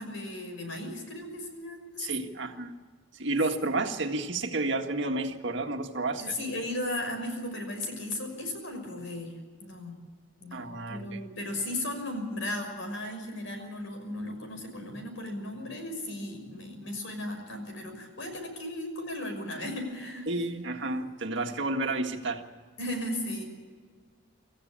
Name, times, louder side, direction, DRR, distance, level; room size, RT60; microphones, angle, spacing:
voice 1, 0.0-2.1 6.2-9.3 9.6-10.0 10.4-20.3 22.8-23.4, left 1 dB, 70° left, 5 dB, 6.0 m, -36 dB
voice 2, 2.0-2.7 3.2-6.4 10.5-11.2 20.3-22.4, right 2 dB, 60° right, 4 dB, 1.8 m, -31 dB
26.0 x 15.0 x 8.7 m, 1.5 s
head